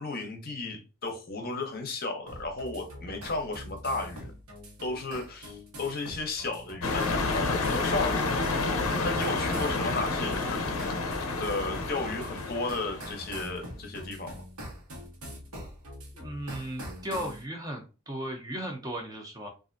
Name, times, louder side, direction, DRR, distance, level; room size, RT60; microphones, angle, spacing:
voice 1, 0.0-4.3 4.8-8.2 9.0-10.6 11.4-14.3, left 3 dB, 45° left, 0.7 m, -34 dB
sound 1, 2.3-17.4, equal, 90° right, 1.0 m, -44 dB
sound 2, 6.8-13.4, left 3 dB, 80° left, 0.5 m, -30 dB
voice 2, 16.1-19.5, right 1 dB, 15° right, 0.6 m, -36 dB
3.3 x 2.5 x 2.5 m
head